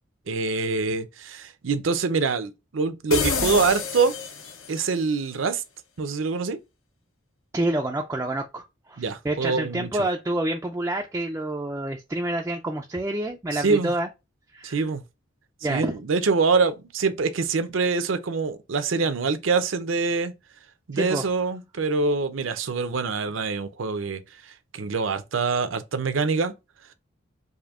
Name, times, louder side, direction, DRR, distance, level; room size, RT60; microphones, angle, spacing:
voice 1, 0.3-4.1 4.7-5.6 6.0-6.6 9.0-10.1 13.5-13.9 14.6-15.0 15.7-20.3 20.9-26.5, right 4 dB, 75° right, 0.6 m, -25 dB
sound 1, 3.1-4.9, left 5 dB, 80° left, 0.8 m, -28 dB
voice 2, 7.5-14.1 14.5-14.9 15.6-15.9 20.9-21.3, right 1 dB, 15° right, 0.3 m, -28 dB
5.0 x 2.6 x 2.4 m
head